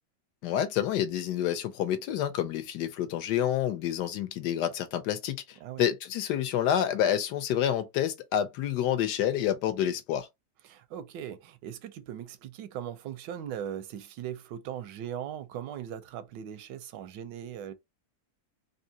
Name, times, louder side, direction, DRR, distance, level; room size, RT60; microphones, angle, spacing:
voice 1, 0.4-5.4 5.8-10.3, left 10 dB, 75° left, 1.2 m, -28 dB
voice 2, 10.6-17.7, right 10 dB, 85° right, 1.3 m, -39 dB
3.6 x 2.7 x 2.7 m
omnidirectional pair, 1.9 m